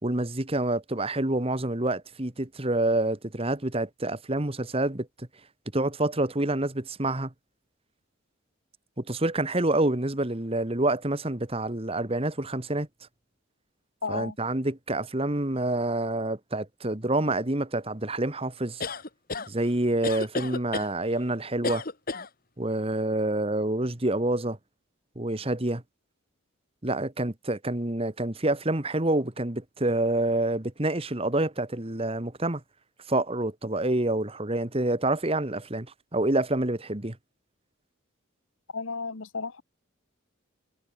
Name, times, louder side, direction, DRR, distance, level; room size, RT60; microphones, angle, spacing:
voice 1, 0.0-5.3 5.7-7.3 9.0-12.9 14.1-18.8 19.5-21.8 22.6-24.6 25.1-25.8 26.8-32.6 33.1-35.9 36.1-37.2, right 2 dB, 25° right, 1.5 m, -27 dB
voice 2, 14.0-14.4 38.7-39.6, left 4 dB, 70° left, 1.2 m, -33 dB
sound 1, 18.8-19.5 20.0-20.9 21.6-22.3, left 3 dB, 45° left, 1.9 m, -31 dB
head